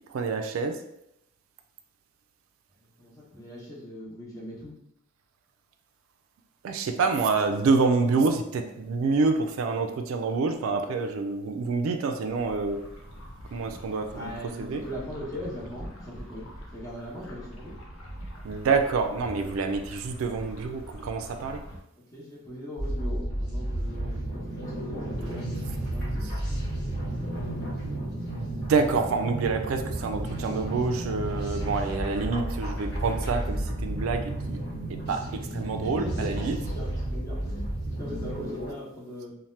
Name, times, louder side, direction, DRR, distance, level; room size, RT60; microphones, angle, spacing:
voice 1, 0.1-0.8 6.6-12.8 13.5-14.3 14.6-14.8 18.4-21.6 28.3-34.6 34.9-36.6, right 4 dB, 80° right, 6 dB, 0.3 m, -27 dB
voice 2, 3.0-4.7 14.1-17.7 22.1-26.3 35.0-35.4 35.8-36.3 36.6-39.3, equal, 15° left, -6 dB, 0.8 m, -40 dB
sound 1, 12.3-21.8, equal, 85° left, 0.7 m, -44 dB
sound 2, 22.8-38.7, right 1 dB, 55° left, 1.1 m, -32 dB
2.8 x 2.1 x 3.2 m, 0.81 s
head